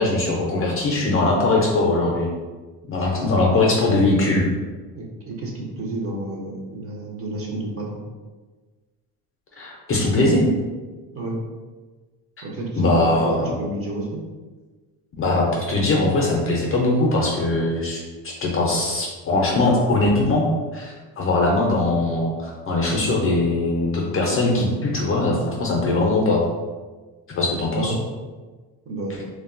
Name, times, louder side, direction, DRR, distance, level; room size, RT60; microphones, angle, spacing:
voice 1, 0.0-2.3 2.9-4.5 9.6-10.5 12.8-13.5 15.2-20.5 20.7-26.4 27.3-27.9, left 2 dB, 30° left, -2 dB, 0.5 m, -21 dB
voice 2, 4.9-8.0 11.1-11.4 12.4-14.2 27.7-28.0 28.9-29.2, right 2 dB, 30° right, -2 dB, 0.6 m, -30 dB
2.5 x 2.2 x 2.4 m, 1.3 s
supercardioid pair, 90°, 47 cm